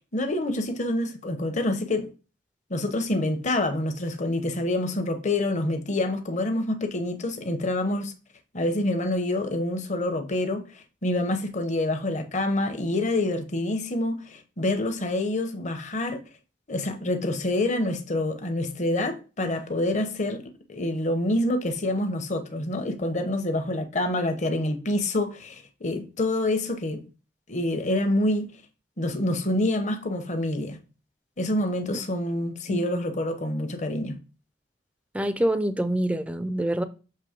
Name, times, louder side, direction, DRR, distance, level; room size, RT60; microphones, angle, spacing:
voice 1, 0.1-2.1 2.7-8.1 8.5-16.2 16.7-27.0 27.5-28.5 29.0-30.8 31.4-34.2, left 1 dB, 40° left, 0.8 m, -27 dB
voice 2, 35.1-36.8, right 1 dB, 5° right, 0.4 m, -25 dB
6.7 x 3.1 x 5.0 m
head